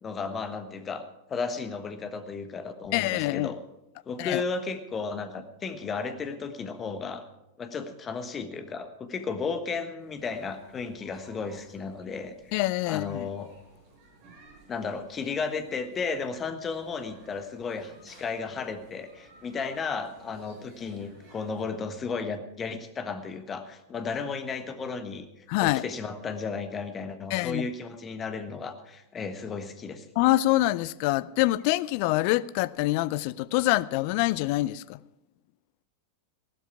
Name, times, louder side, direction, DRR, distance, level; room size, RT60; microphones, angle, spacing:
voice 1, 0.0-3.6 4.1-7.2 7.6-12.6 12.9-13.5 14.7-25.2 25.6-30.1, left 5 dB, 20° left, 1.3 m, -34 dB
voice 2, 2.9-3.5 4.2-4.4 12.5-13.3 25.5-25.8 27.3-27.7 30.2-35.0, left 18 dB, 45° left, 0.4 m, -25 dB
sound 1, 10.0-21.6, right 2 dB, 45° right, 7.1 m, -55 dB
15.5 x 12.5 x 4.8 m
figure-of-eight pair, 90°, 0 cm